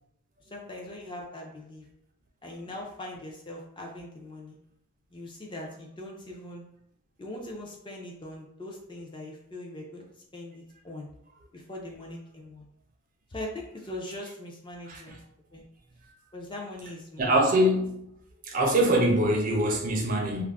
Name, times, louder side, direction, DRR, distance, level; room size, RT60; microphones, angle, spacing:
voice 1, 0.5-1.9 2.4-4.6 5.1-6.6 7.2-10.0 10.3-11.1 11.5-12.7 13.3-15.2 15.5-15.6 16.3-17.3, left 1 dB, 20° left, -1 dB, 0.4 m, -41 dB
voice 2, 17.2-18.1 18.4-20.4, right 1 dB, 40° right, 1 dB, 0.4 m, -24 dB
2.4 x 2.0 x 3.3 m, 0.76 s
head